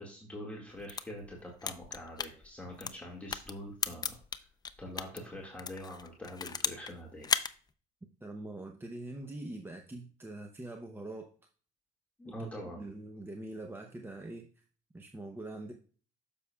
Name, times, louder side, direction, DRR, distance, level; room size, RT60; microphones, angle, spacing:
voice 1, 0.0-4.5 4.8-7.3 12.2-12.9, left 1 dB, 10° left, -2 dB, 1.9 m, -44 dB
sound 1, 0.7-5.2 5.6-6.9 7.2-7.5, left 5 dB, 25° left, 0.5 m, -35 dB
voice 2, 8.2-11.3 12.2-12.5 12.8-14.5 14.9-15.7, right 2 dB, 15° right, 4 dB, 0.7 m, -43 dB
9.5 x 6.8 x 2.3 m, 0.40 s
cardioid pair, 110°, 17 cm